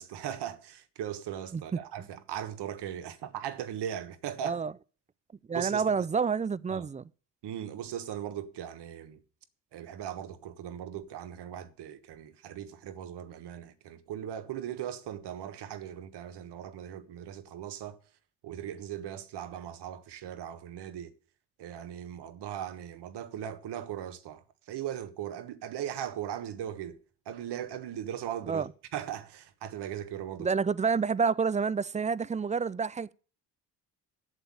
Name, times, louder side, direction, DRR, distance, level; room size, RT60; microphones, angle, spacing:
voice 1, 0.0-4.6 5.5-6.1 6.7-6.9 7.4-9.2 9.7-18.0 18.4-21.1 21.6-27.0 27.2-30.5, right 10 dB, 65° right, 1.4 m, -39 dB
voice 2, 5.5-7.0 28.5-28.7 30.4-33.1, right 5 dB, 15° right, 0.4 m, -28 dB
8.2 x 6.9 x 8.5 m
hypercardioid pair, 60°, 44 cm